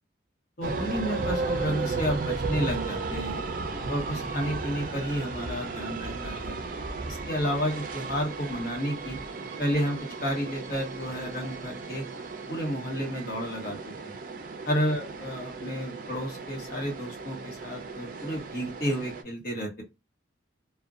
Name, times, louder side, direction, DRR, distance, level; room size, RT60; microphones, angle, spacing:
voice 1, 0.6-3.4 3.9-6.6 7.1-9.2 9.6-12.0 12.5-14.2 14.7-19.8, equal, 50° left, 1 dB, 1.0 m, -31 dB
sound 1, 0.6-19.2, right 3 dB, 45° right, 0.4 m, -35 dB
2.4 x 2.1 x 2.3 m, 0.25 s
head